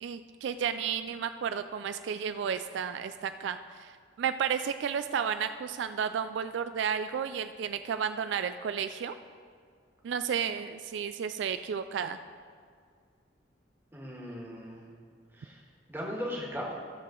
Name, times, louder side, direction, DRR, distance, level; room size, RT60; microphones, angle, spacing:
voice 1, 0.0-3.9 4.2-9.2 10.0-12.2, right 7 dB, 75° right, 10 dB, 0.3 m, -32 dB
voice 2, 13.9-14.9 15.3-15.6 15.9-16.7, equal, 10° right, -3 dB, 1.5 m, -38 dB
14.0 x 6.6 x 3.8 m, 2.1 s
head